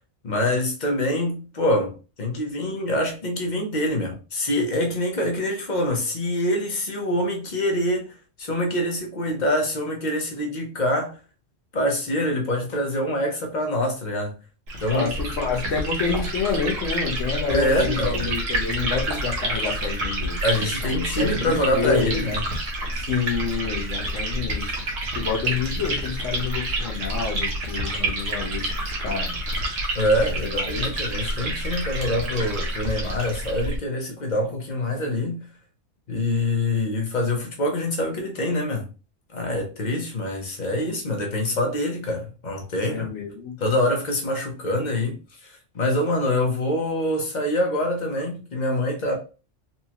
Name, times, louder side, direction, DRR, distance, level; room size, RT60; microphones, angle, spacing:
voice 1, 0.2-8.1 8.4-11.2 11.7-14.3 14.8-15.1 17.5-18.3 20.4-22.4 29.9-35.5 36.1-38.8 39.3-43.1 43.6-45.2 45.4-49.2, left 1 dB, 40° left, 0.9 m, -25 dB
Liquid, 14.7-33.8, right 1 dB, 80° right, 1.4 m, -28 dB
voice 2, 14.9-22.2 22.9-24.8 25.1-29.4 30.4-30.9 42.9-43.6, left 6 dB, 75° left, 1.3 m, -28 dB
4.2 x 2.4 x 2.8 m
omnidirectional pair, 1.3 m